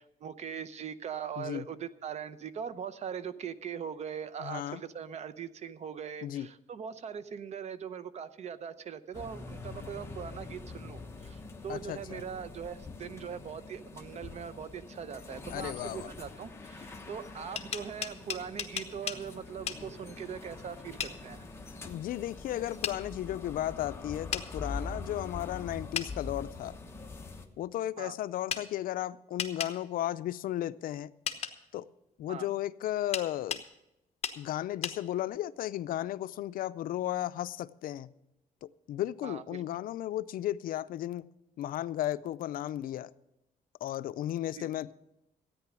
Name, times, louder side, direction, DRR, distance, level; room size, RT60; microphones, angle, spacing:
voice 1, 0.0-21.4 28.0-28.1 32.3-32.5 39.2-39.6 44.5-44.7, right 7 dB, 50° right, 14 dB, 0.7 m, -41 dB
voice 2, 1.4-1.7 4.4-4.8 6.2-6.5 11.7-12.2 15.5-16.1 21.8-26.8 27.6-31.1 31.7-31.9 32.2-33.6 34.4-38.1 38.9-41.3 41.6-43.1 43.8-44.9, left 13 dB, 75° left, 16 dB, 0.4 m, -34 dB
sound 1, 9.1-27.5, left 3 dB, 15° left, 1.2 m, -44 dB
sound 2, 17.4-19.2 19.7-19.8 21.0-21.2 22.8-23.0 24.3-24.5 25.9-26.1 28.5-28.6 29.4-29.7 31.3-31.5 33.1-33.7 34.2-34.4 34.8-35.0, left 7 dB, 45° left, 1.1 m, -34 dB
13.5 x 9.4 x 6.1 m, 0.88 s
cardioid pair, 130°, 15 cm